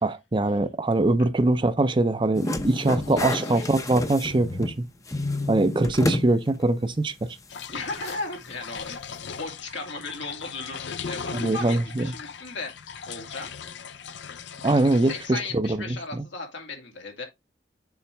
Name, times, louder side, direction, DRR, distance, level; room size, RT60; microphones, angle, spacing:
voice 1, 0.0-4.9 5.5-7.3 11.3-12.1 14.6-16.2, right 2 dB, 25° right, 0.6 m, -23 dB
sound 1, 2.3-4.8 5.1-6.3 6.7-6.8 8.1-8.2, left 2 dB, 20° left, 0.6 m, -29 dB
voice 2, 3.0-3.6 7.7-12.7 13.1-13.5 15.0-17.2, left 3 dB, 90° left, 2.3 m, -36 dB
sound 2, 7.5-15.3, left 6 dB, 70° left, 0.6 m, -38 dB
7.1 x 5.0 x 3.3 m
head